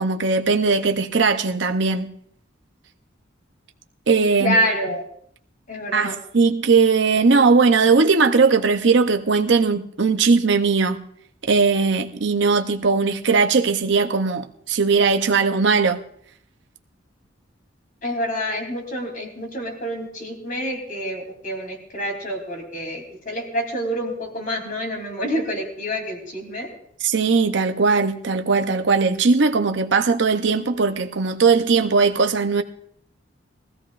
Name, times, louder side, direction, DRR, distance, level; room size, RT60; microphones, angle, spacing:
voice 1, 0.0-2.1 4.1-4.6 5.9-11.0 11.4-16.0 27.0-32.6, right 4 dB, 65° right, 0.7 m, -19 dB
voice 2, 4.4-5.0 5.7-6.2 18.0-26.7, equal, 45° left, 3.2 m, -27 dB
21.5 x 14.5 x 2.5 m
head